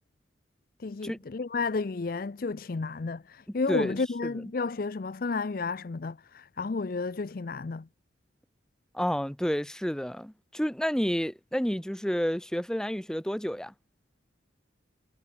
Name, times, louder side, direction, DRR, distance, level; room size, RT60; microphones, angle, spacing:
voice 1, 0.8-7.9, left 4 dB, 50° left, 0.5 m, -32 dB
voice 2, 3.5-4.3 8.9-13.7, equal, 5° left, 0.8 m, -30 dB
head